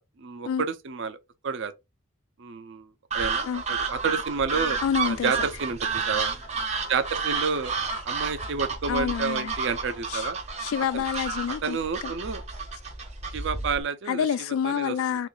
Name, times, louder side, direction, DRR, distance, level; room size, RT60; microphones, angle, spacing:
voice 1, 0.2-1.2 1.4-1.7 2.4-2.9 3.1-6.3 6.9-7.7 8.0-10.4 10.9-11.0 11.6-12.4 13.3-14.3 14.6-15.3, right 5 dB, 60° right, 0.5 m, -30 dB
sound 1, 3.1-13.8, right 4 dB, 30° right, 0.7 m, -31 dB
voice 2, 4.8-5.3 8.9-9.5 10.1-10.2 10.6-11.8 12.0-12.1 14.1-15.3, left 8 dB, 80° left, 0.3 m, -27 dB
2.9 x 2.5 x 3.8 m
head